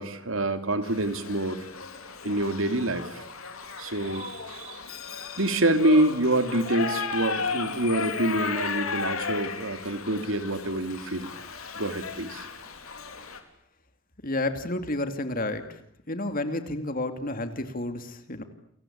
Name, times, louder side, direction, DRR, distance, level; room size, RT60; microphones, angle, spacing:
voice 1, 0.0-1.7 2.2-3.3 3.8-4.8 5.4-11.3 11.7-12.5, right 1 dB, 70° right, 9 dB, 2.9 m, -26 dB
Shout / Livestock farm animals working animals, 0.8-13.4, left 5 dB, 85° left, 3.7 m, -35 dB
voice 2, 14.2-15.6 16.1-18.4, left 2 dB, 40° left, 8 dB, 2.5 m, -30 dB
30.0 x 23.0 x 8.8 m, 0.71 s
head